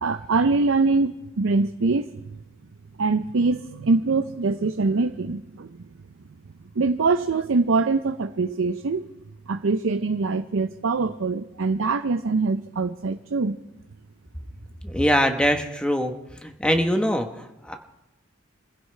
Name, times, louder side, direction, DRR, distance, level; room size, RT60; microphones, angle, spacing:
voice 1, 0.0-2.1 3.0-5.8 6.8-9.1 9.5-13.6, right 3 dB, 80° right, 9 dB, 0.6 m, -23 dB
voice 2, 14.8-16.1 16.4-17.8, equal, 5° left, 5 dB, 1.0 m, -23 dB
26.5 x 16.0 x 3.3 m, 0.91 s
head